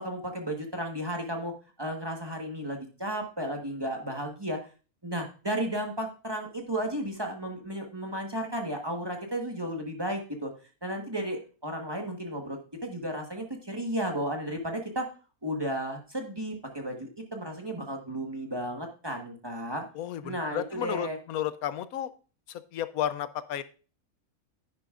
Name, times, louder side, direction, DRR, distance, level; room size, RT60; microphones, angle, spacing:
voice 1, 0.0-1.5 1.8-4.6 5.0-10.5 10.8-15.1 15.4-19.8 20.2-21.2, right 1 dB, 20° right, 2 dB, 1.2 m, -33 dB
voice 2, 19.9-22.1 22.5-23.6, left 11 dB, 80° left, 14 dB, 1.1 m, -33 dB
10.0 x 9.5 x 2.4 m, 0.36 s
omnidirectional pair, 1.5 m